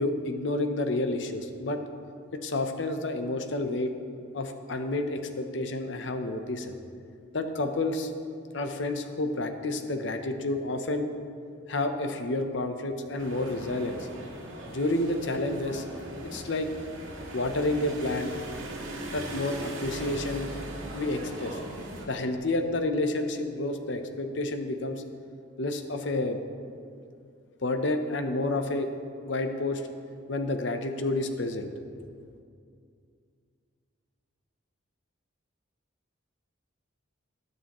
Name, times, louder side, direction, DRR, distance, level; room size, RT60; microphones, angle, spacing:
voice 1, 0.0-1.8 2.3-3.9 4.3-6.7 7.3-8.1 8.5-11.1 11.7-14.1 14.7-15.8 16.2-16.7 17.3-18.3 19.1-20.5 20.9-21.6 22.1-25.0 25.6-26.4 27.6-28.9 29.3-29.8 30.3-31.7, left 2 dB, 60° left, 7 dB, 0.7 m, -30 dB
sound 1, 13.2-22.1, right 1 dB, 80° right, 1.9 m, -39 dB
20.0 x 6.8 x 3.0 m, 2.3 s
head